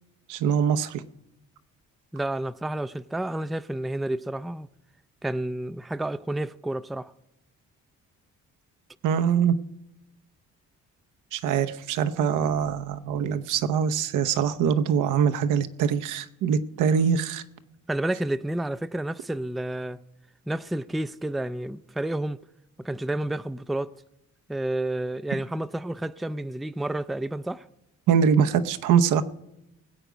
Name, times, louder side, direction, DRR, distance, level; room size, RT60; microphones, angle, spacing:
voice 1, 0.3-1.0 9.0-9.5 11.3-17.4 28.1-29.2, right 7 dB, 90° right, 0.8 m, -23 dB
voice 2, 2.1-4.7 5.2-7.1 17.9-20.0 20.5-22.4 22.8-23.9 24.5-27.6, right 1 dB, ahead, 0.4 m, -30 dB
20.0 x 8.2 x 5.1 m
cardioid pair, 90°, 30 cm